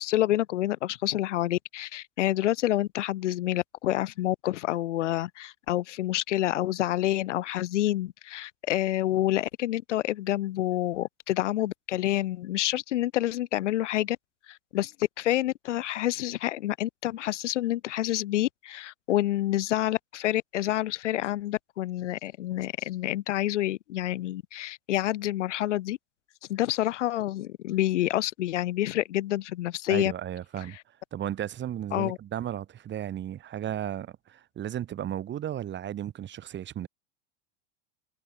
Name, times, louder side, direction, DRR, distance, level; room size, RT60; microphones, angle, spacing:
voice 1, 0.0-14.2 14.5-14.9 15.2-26.0 26.5-30.1 31.9-32.2, left 14 dB, 85° left, 1.5 m, -28 dB
voice 2, 29.9-30.8 31.1-36.9, right 11 dB, 30° right, 1.6 m, -34 dB
hypercardioid pair, 105°, 35 cm